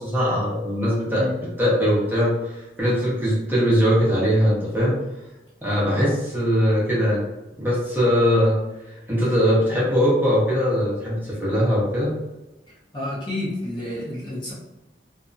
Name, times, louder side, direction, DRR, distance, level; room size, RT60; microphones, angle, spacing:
voice 1, 0.0-5.0 5.6-7.2 7.6-8.6 9.1-12.1, equal, 10° right, -7 dB, 0.8 m, -21 dB
voice 2, 12.9-14.5, left 1 dB, 25° left, -7 dB, 0.7 m, -29 dB
2.7 x 2.3 x 2.6 m, 1.0 s
head